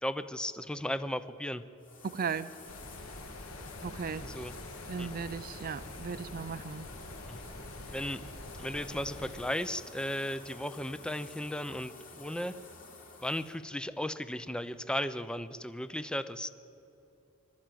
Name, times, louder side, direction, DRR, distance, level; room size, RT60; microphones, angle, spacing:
voice 1, 0.0-1.6 4.2-4.6 5.0-5.1 7.3-7.4 7.9-8.2 8.6-12.5 13.2-16.5, left 1 dB, 5° left, 12 dB, 0.6 m, -35 dB
sound 1, 1.8-13.6, left 3 dB, 40° left, 3.1 m, -50 dB
voice 2, 2.0-2.5 3.8-4.3 4.9-6.9, right 5 dB, 45° right, 13 dB, 0.5 m, -36 dB
sound 2, 2.7-9.5, left 1 dB, 70° left, 1.7 m, -46 dB
26.0 x 13.0 x 9.2 m, 2.7 s
head